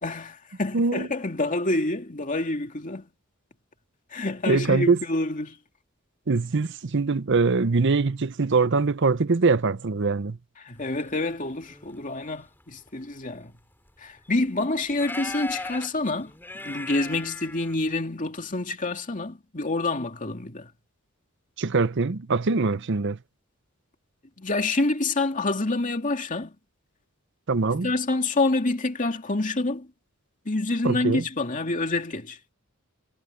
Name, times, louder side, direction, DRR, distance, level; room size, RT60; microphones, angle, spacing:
voice 1, 0.0-3.1 4.1-5.6 10.6-13.5 14.0-20.7 24.4-26.6 27.8-29.9 30.4-32.4, left 2 dB, 35° left, 2.6 m, -27 dB
voice 2, 0.7-1.1 4.5-5.0 6.3-10.4 21.6-23.2 27.5-27.9 30.8-31.2, right 4 dB, 55° right, 0.7 m, -23 dB
sound 1, 11.4-12.0 12.9-13.0 13.4-13.5 14.2-14.3 14.9-17.9, left 2 dB, 10° left, 5.5 m, -37 dB
head